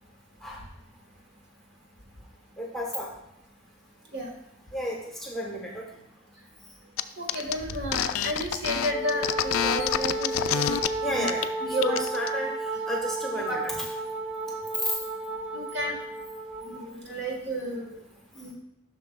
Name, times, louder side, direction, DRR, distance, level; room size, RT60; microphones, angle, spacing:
voice 1, 2.6-3.1 4.7-5.9 11.0-11.5 11.8-13.7 14.8-14.9, equal, ahead, -2 dB, 1.0 m, -32 dB
sound 1, 7.0-7.1 7.3-10.9 11.2-11.5 11.8-12.3, left 10 dB, 75° left, 0.3 m, -27 dB
voice 2, 7.2-11.3 11.6-12.0 13.4-13.6 15.5-16.0 16.6-18.0 18.3-18.5, right 1 dB, 55° right, 0 dB, 1.5 m, -32 dB
Wind instrument woodwind instrument, 8.9-16.9, right 2 dB, 25° right, 1.0 m, -33 dB
11.5 x 6.1 x 2.2 m, 0.81 s
head